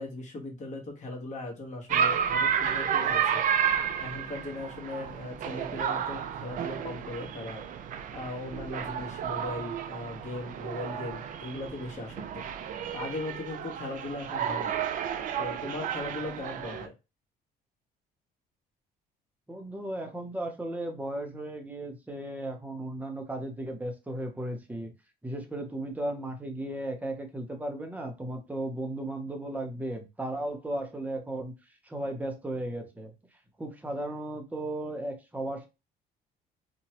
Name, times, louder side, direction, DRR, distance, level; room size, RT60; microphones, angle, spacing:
voice 1, 0.0-3.4 4.0-7.7 8.1-12.4 12.9-14.8 15.4-16.9, left 2 dB, 45° left, 0 dB, 1.3 m, -38 dB
sound 1, 1.9-16.9, right 8 dB, 50° right, 0.4 m, -31 dB
voice 2, 19.5-24.9 25.2-31.5 31.8-33.1 33.6-35.7, right 1 dB, 10° right, 4 dB, 0.8 m, -35 dB
2.9 x 2.2 x 2.9 m, 0.26 s
cardioid pair, 110°, 17 cm